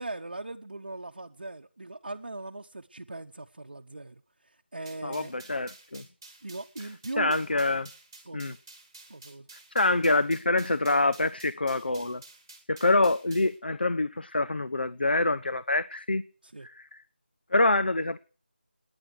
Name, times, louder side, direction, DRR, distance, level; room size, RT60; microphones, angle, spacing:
voice 1, 0.0-5.3 6.4-7.4 8.2-8.6 9.1-9.5 16.4-16.7, right 2 dB, 60° right, 4 dB, 0.8 m, -39 dB
sound 1, 4.9-13.6, right 3 dB, 15° right, 1.8 m, -51 dB
voice 2, 5.0-6.0 7.2-7.9 8.3-8.5 9.7-12.2 12.7-16.2 17.5-18.2, left 2 dB, 65° left, 15 dB, 0.7 m, -25 dB
27.5 x 9.9 x 4.8 m, 0.39 s
figure-of-eight pair, 180°, 6 cm